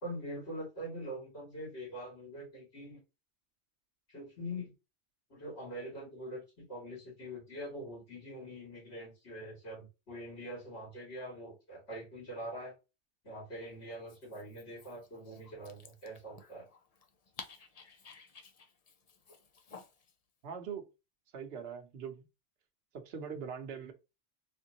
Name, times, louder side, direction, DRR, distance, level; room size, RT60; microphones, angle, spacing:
voice 1, 0.0-3.0 4.1-4.7 5.3-12.8 13.2-16.7, equal, 65° left, 2.7 m, -44 dB
Dog, 13.9-20.1, left 5 dB, 45° left, 0.6 m, -54 dB
voice 2, 20.4-20.9 21.3-22.3 22.9-23.9, right 7 dB, 60° right, 1.0 m, -42 dB
4.4 x 3.5 x 2.9 m
omnidirectional pair, 1.2 m